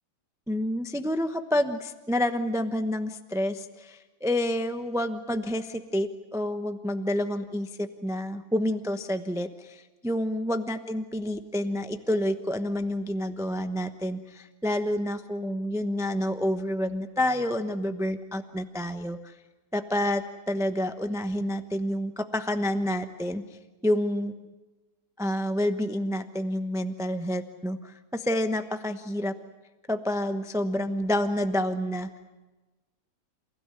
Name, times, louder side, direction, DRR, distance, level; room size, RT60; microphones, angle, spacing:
voice 1, 0.5-19.3 19.7-23.4 23.8-24.3 25.2-29.3 29.9-32.1, left 1 dB, 5° right, 8 dB, 0.4 m, -29 dB
29.0 x 16.5 x 9.8 m, 1.2 s
omnidirectional pair, 2.1 m